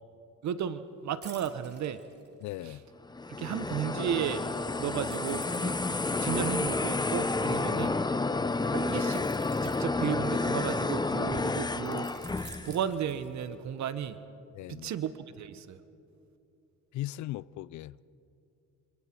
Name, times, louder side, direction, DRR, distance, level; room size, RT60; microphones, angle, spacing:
voice 1, 0.4-2.0 2.7-2.8 3.4-4.4 4.8-5.7 6.2-8.0 8.7-9.2 9.6-12.1 12.6-14.2 14.7-15.8, right 9 dB, 65° right, 1.0 m, -34 dB
sound 1, 1.2-2.8 5.1-7.8 9.0-10.8 11.9-13.7 14.1-14.3, right 4 dB, 35° right, 2.9 m, -53 dB
voice 2, 2.4-2.8 7.7-8.0 14.5-14.9 16.9-18.0, left 16 dB, 70° left, 0.5 m, -39 dB
sound 2, 3.1-12.8, left 3 dB, 15° left, 0.7 m, -30 dB
27.5 x 25.5 x 4.5 m
cardioid pair, 90°, 30 cm